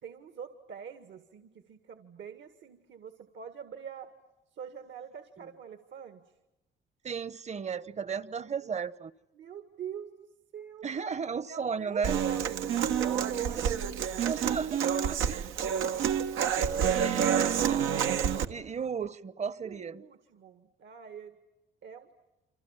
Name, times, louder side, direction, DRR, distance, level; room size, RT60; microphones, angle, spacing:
voice 1, 0.0-4.1 4.5-6.2 8.1-8.5 9.3-10.3 10.5-10.9 11.5-14.3 14.9-16.0 19.6-21.4 21.8-22.1, right 7 dB, 65° right, 1.9 m, -44 dB
voice 2, 7.0-9.1 10.8-12.2 14.2-15.5 16.9-20.0, right 6 dB, 35° right, 1.0 m, -35 dB
Human voice / Acoustic guitar, 12.0-18.5, right 8 dB, 85° right, 1.4 m, -28 dB
28.5 x 26.0 x 7.4 m
cardioid pair, 90°, 20 cm